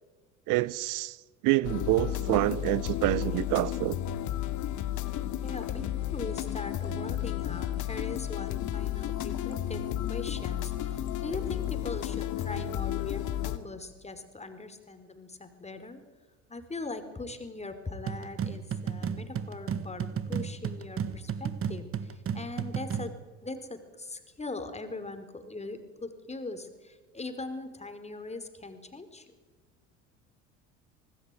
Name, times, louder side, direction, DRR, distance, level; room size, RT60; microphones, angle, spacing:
voice 1, 0.5-4.0, right 19 dB, 55° right, 0.7 m, -27 dB
sound 1, 1.6-13.6, left 12 dB, 50° left, 2.3 m, -32 dB
voice 2, 5.4-9.8 10.1-16.0 16.5-29.3, left 3 dB, 15° left, 4.3 m, -41 dB
sound 2, 18.1-23.2, right 7 dB, 35° right, 1.6 m, -34 dB
25.0 x 19.5 x 9.1 m
hypercardioid pair, 70°, 38 cm